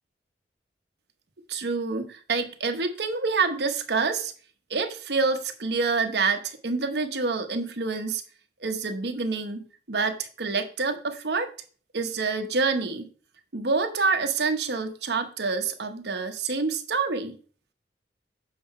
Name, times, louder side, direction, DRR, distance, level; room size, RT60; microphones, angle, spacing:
voice 1, 1.5-4.3 4.7-8.2 8.6-11.5 11.9-13.1 13.5-17.4, right 4 dB, 75° right, 6 dB, 1.0 m, -27 dB
7.8 x 5.7 x 4.3 m, 0.41 s
head